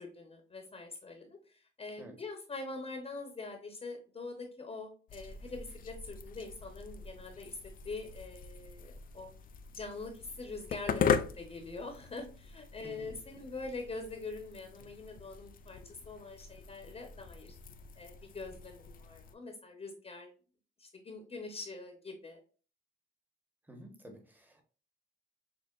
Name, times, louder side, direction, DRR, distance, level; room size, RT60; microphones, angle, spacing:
voice 1, 0.0-7.6 7.8-9.3 9.7-17.5 18.0-20.3 20.8-22.4, left 3 dB, 30° left, 4 dB, 1.0 m, -44 dB
sound 1, 5.1-19.3, left 7 dB, 45° left, 0.4 m, -40 dB
voice 2, 12.7-13.2 23.6-24.6, right 1 dB, 10° right, 4 dB, 1.2 m, -51 dB
6.4 x 2.4 x 2.5 m, 0.38 s
cardioid pair, 90°, 20 cm